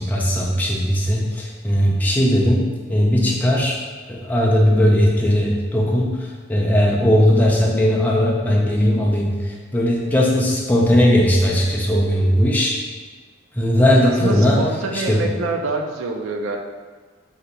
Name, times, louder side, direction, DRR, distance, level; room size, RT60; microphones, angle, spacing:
voice 1, 0.0-3.8 4.1-12.7 13.5-14.6 14.9-15.3, equal, 10° left, -3 dB, 0.3 m, -18 dB
voice 2, 14.0-16.6, right 3 dB, 85° right, 4 dB, 0.4 m, -26 dB
2.8 x 2.2 x 3.6 m, 1.4 s
head